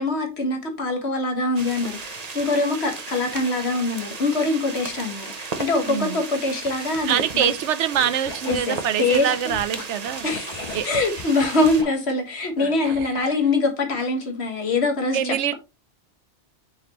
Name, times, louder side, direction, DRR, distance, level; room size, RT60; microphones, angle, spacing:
voice 1, 0.0-7.5 8.5-9.3 10.2-15.5, left 2 dB, 65° left, 1.8 m, -24 dB
sound 1, 1.6-11.8, right 4 dB, 40° right, 0.9 m, -35 dB
voice 2, 5.9-6.2 7.1-10.3 10.7-10.9 12.8-13.4 15.1-15.5, right 9 dB, 85° right, 1.0 m, -24 dB
Scratching (performance technique), 7.9-9.8 10.3-11.9 12.5-13.2, left 3 dB, 40° left, 2.1 m, -36 dB
5.9 x 5.4 x 3.0 m
omnidirectional pair, 1.2 m